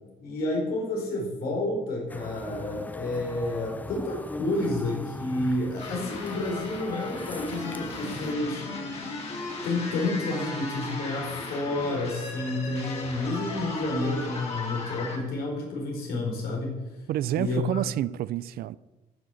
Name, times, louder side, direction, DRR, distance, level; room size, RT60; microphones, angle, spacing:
voice 1, 0.2-8.6 9.6-16.8 17.3-17.8, left 2 dB, 80° left, 4.7 m, -30 dB
sound 1, 2.1-8.3, left 2 dB, 10° left, 0.4 m, -40 dB
sound 2, 5.8-15.2, left 3 dB, 40° left, 3.6 m, -37 dB
voice 2, 17.1-18.8, right 13 dB, 75° right, 0.5 m, -29 dB
14.0 x 6.6 x 7.0 m
cardioid pair, 140°, 16 cm